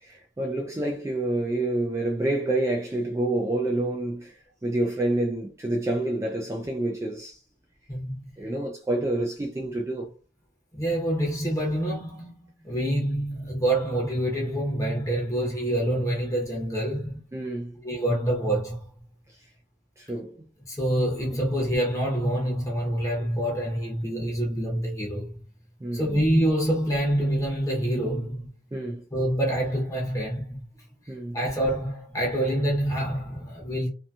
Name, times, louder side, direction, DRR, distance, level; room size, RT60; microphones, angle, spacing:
voice 1, 0.0-7.4 8.4-10.1 17.3-17.8 20.0-20.5 21.3-21.4 25.8-26.2 28.7-29.0 31.1-31.4, right 1 dB, 15° right, 0.3 m, -28 dB
voice 2, 7.9-8.3 10.7-17.3 17.8-18.9 20.7-25.3 25.9-28.5 29.1-30.6 31.3-33.9, right 1 dB, 20° left, 0.8 m, -26 dB
2.7 x 2.6 x 2.3 m
head